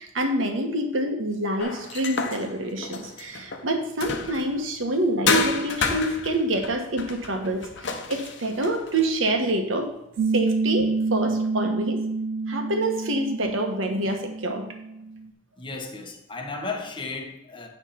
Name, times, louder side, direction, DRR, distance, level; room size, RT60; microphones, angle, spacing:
voice 1, 0.0-7.7 8.1-9.9 10.3-12.0 12.5-14.6, right 1 dB, 80° right, 4 dB, 1.2 m, -27 dB
sound 1, 1.6-4.6 5.3-9.1, left 3 dB, 65° left, 0.8 m, -29 dB
Piano, 10.2-15.3, right 3 dB, 65° right, 0.3 m, -28 dB
voice 2, 15.6-17.7, left 3 dB, 25° left, 2 dB, 1.0 m, -34 dB
9.3 x 3.3 x 5.7 m, 0.85 s
head